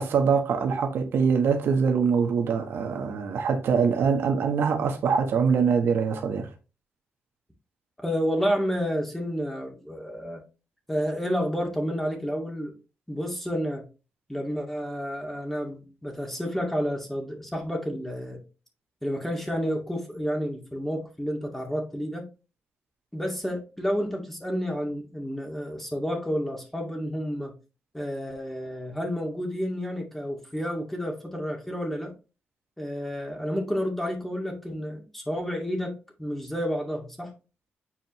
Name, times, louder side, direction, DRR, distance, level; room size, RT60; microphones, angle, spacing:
voice 1, 0.0-6.5, right 6 dB, 80° right, 1.3 m, -23 dB
voice 2, 8.0-10.4 10.9-12.7 13.1-13.8 14.3-18.4 19.0-22.3 23.1-27.5 27.9-32.1 32.8-37.3, equal, 5° left, 2.2 m, -30 dB
7.5 x 4.5 x 3.1 m
cardioid pair, 75°, 4 cm